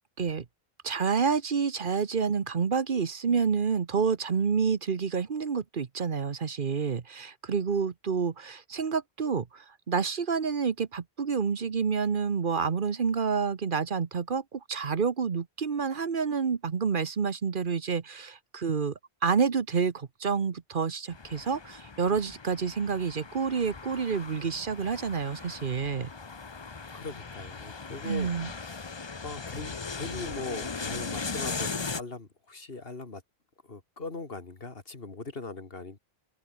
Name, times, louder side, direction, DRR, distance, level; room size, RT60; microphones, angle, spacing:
voice 1, 0.8-18.9 19.2-26.1 28.0-28.5, right 5 dB, 55° right, 1.2 m, -28 dB
sound 1, 21.1-32.0, left 4 dB, 30° left, 0.8 m, -38 dB
voice 2, 26.9-33.2 33.6-36.0, left 3 dB, 65° left, 2.6 m, -40 dB
omnidirectional pair, 1.0 m